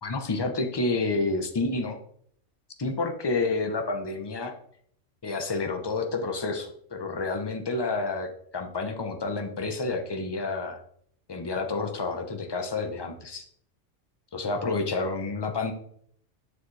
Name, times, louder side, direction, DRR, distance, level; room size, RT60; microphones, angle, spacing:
voice 1, 0.0-2.0 2.8-4.5 5.2-10.8 11.3-13.5 14.3-15.7, left 3 dB, 25° left, 5 dB, 0.6 m, -29 dB
7.0 x 6.5 x 3.2 m, 0.65 s
omnidirectional pair, 1.3 m